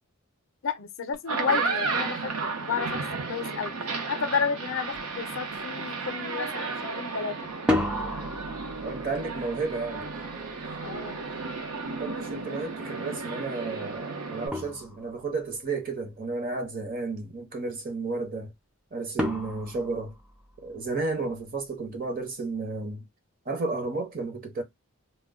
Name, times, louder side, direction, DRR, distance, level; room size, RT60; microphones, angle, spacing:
voice 1, 0.6-3.7 4.0-7.5 10.8-11.2 21.2-21.3, left 6 dB, 60° left, 0.4 m, -32 dB
sound 1, 1.1-14.5, right 4 dB, 85° right, 0.7 m, -33 dB
sound 2, 4.9-5.1 5.5-6.0 7.5-12.3 14.0-14.1 14.5-15.4 19.2-20.9, left 1 dB, 5° right, 0.3 m, -34 dB
voice 2, 8.8-10.1 12.0-18.5 18.9-20.1 20.6-23.0 23.5-24.6, right 3 dB, 40° right, 0.7 m, -32 dB
2.1 x 2.0 x 3.4 m
head